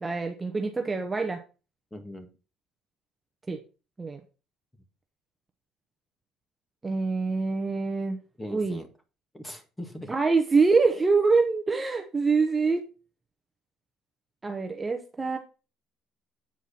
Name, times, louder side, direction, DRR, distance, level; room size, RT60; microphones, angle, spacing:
voice 1, 0.0-1.4 3.5-3.6 4.0-4.2 6.8-8.2 8.5-8.8 10.1-12.9 14.4-15.4, right 4 dB, 15° right, 4 dB, 0.9 m, -25 dB
voice 2, 1.9-2.3 8.4-8.9 9.3-10.1, left 1 dB, 10° left, 6 dB, 1.8 m, -40 dB
8.5 x 4.6 x 5.8 m, 0.33 s
cardioid pair, 135°, 0 cm